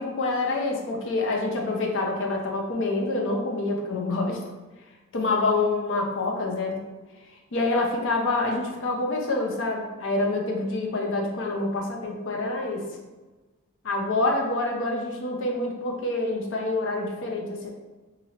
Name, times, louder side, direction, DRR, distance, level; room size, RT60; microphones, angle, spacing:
voice 1, 0.0-4.4 5.1-6.8 7.5-12.9 13.8-17.7, left 2 dB, 60° left, 0 dB, 0.6 m, -27 dB
2.9 x 2.6 x 2.8 m, 1.2 s
head